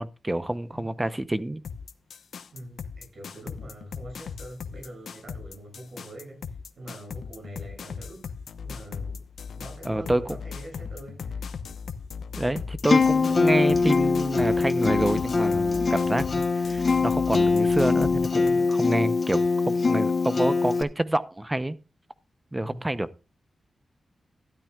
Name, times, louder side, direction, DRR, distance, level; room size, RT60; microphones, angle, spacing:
voice 1, 0.0-1.6 9.8-10.4 12.4-19.4 19.7-21.8 22.5-23.1, right 1 dB, 10° right, 0.7 m, -27 dB
sound 1, 1.6-18.5, left 6 dB, 75° left, 0.9 m, -38 dB
voice 2, 2.5-9.3 9.5-11.4 22.6-22.9, right 1 dB, 45° right, 7.7 m, -44 dB
Acoustic guitar, 12.8-20.8, left 4 dB, 35° left, 1.1 m, -23 dB
13.0 x 12.0 x 2.4 m
wide cardioid pair, 160°, 0 cm